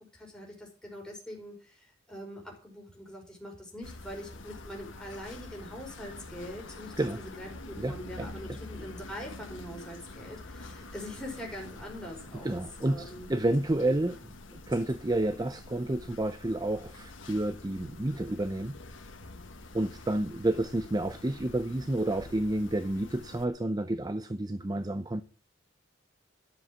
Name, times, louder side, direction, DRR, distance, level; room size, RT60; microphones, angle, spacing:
voice 1, 0.1-12.6 12.9-13.3, equal, 5° left, 5.0 m, -43 dB
sound 1, 3.8-23.5, left 2 dB, 75° left, 1.5 m, -47 dB
voice 2, 7.8-8.3 12.4-18.8 19.7-25.2, right 1 dB, 20° right, 0.6 m, -30 dB
12.5 x 7.4 x 7.5 m
head